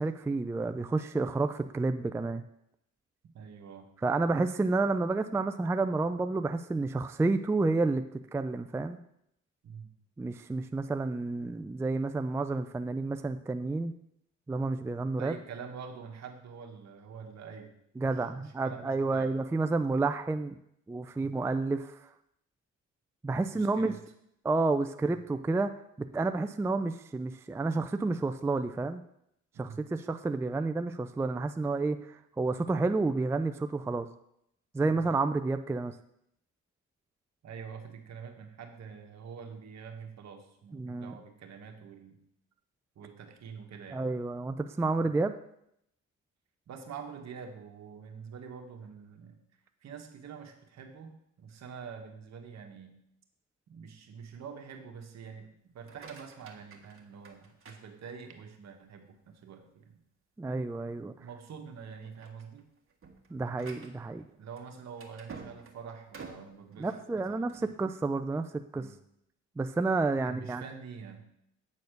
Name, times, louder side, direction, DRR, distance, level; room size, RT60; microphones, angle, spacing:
voice 1, 0.0-2.4 4.0-8.0 8.3-9.0 10.2-13.9 14.5-15.4 18.0-20.6 20.9-22.1 23.2-23.9 24.4-25.7 26.1-29.0 29.6-34.1 34.7-36.0 40.7-41.1 43.9-45.3 60.4-61.1 63.3-64.2 66.8-68.5 68.7-68.8 69.6-70.6, right 3 dB, 10° right, 9 dB, 0.3 m, -30 dB
voice 2, 3.3-3.9 9.6-9.9 15.2-19.3 23.5-24.0 25.1-25.2 29.5-29.9 37.4-42.2 42.9-44.0 46.7-49.4 49.8-53.0 53.7-60.0 61.2-62.7 64.3-67.8 68.7-68.9 70.2-71.3, right 6 dB, 60° right, 5 dB, 1.4 m, -46 dB
sound 1, 55.7-58.5 59.0-59.5 59.9-60.0 60.4-60.6 61.3-61.6 61.9-67.8, right 4 dB, 45° right, 1.5 m, -51 dB
8.4 x 4.2 x 6.5 m, 0.76 s
cardioid pair, 90°, 30 cm